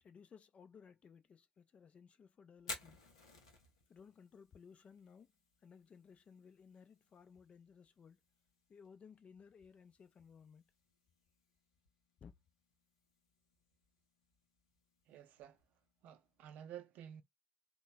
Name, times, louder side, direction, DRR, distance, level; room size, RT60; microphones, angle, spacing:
voice 1, 0.0-3.0 3.9-5.3 5.6-8.2 8.7-10.6 12.2-12.3, left 6 dB, 40° left, 0.5 m, -59 dB
Fire, 2.6-16.4, left 3 dB, 80° left, 0.7 m, -57 dB
voice 2, 15.1-15.6 16.0-17.2, right 10 dB, 60° right, 0.5 m, -52 dB
3.0 x 2.1 x 3.9 m
figure-of-eight pair, 45°, 3 cm